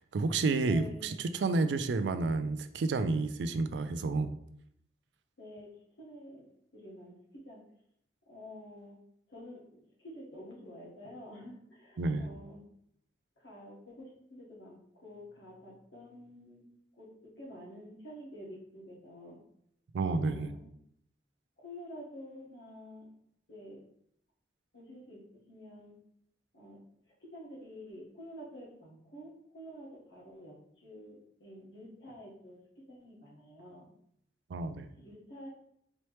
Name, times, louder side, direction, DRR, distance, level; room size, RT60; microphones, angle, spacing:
voice 1, 0.1-4.3 12.0-12.3 19.9-20.5 34.5-34.9, right 3 dB, 75° right, 10 dB, 0.3 m, -30 dB
voice 2, 0.6-1.2 5.4-6.5 6.7-7.6 8.3-9.0 9.3-9.7 10.0-12.6 13.4-16.7 16.9-19.4 20.1-20.7 21.6-23.1 23.5-23.8 24.7-25.2 25.5-26.0 26.5-26.8 27.2-33.9 35.0-35.5, equal, 80° left, -4 dB, 1.4 m, -49 dB
4.3 x 3.0 x 3.1 m, 0.72 s
head